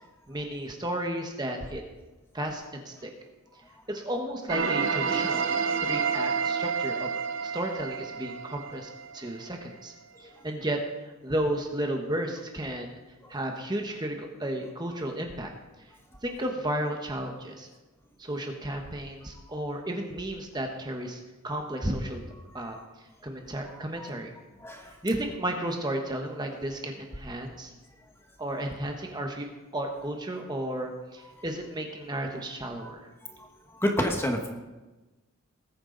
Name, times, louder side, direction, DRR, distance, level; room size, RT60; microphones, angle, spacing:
voice 1, 0.3-1.8 2.3-3.1 3.9-5.4 5.8-7.1 7.4-9.9 10.4-13.0 13.3-15.5 16.2-17.7 18.2-22.2 22.5-22.8 23.2-24.3 25.0-27.7 28.4-29.5 29.7-33.1, right 1 dB, 20° right, 3 dB, 1.2 m, -33 dB
sound 1, 4.5-9.3, right 5 dB, 65° right, 0.8 m, -29 dB
voice 2, 24.6-24.9 31.3-31.4 32.8-32.9 33.3-33.5 33.7-34.5, equal, 10° left, 3 dB, 1.3 m, -30 dB
19.5 x 9.1 x 4.0 m, 1.1 s
head